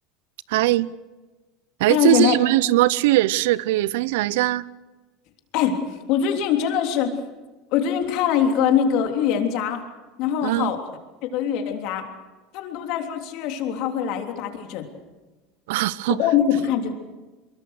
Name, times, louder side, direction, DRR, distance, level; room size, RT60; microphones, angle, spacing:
voice 1, 0.5-0.9 1.8-4.7 10.4-10.7 15.7-16.2, right 16 dB, 80° right, 0.7 m, -20 dB
voice 2, 1.9-2.4 5.5-7.2 7.7-9.9 10.2-10.8 11.3-12.0 12.5-14.9 16.1-16.9, left 8 dB, 60° left, 3.4 m, -23 dB
23.5 x 22.5 x 6.6 m
supercardioid pair, 125°, 0 cm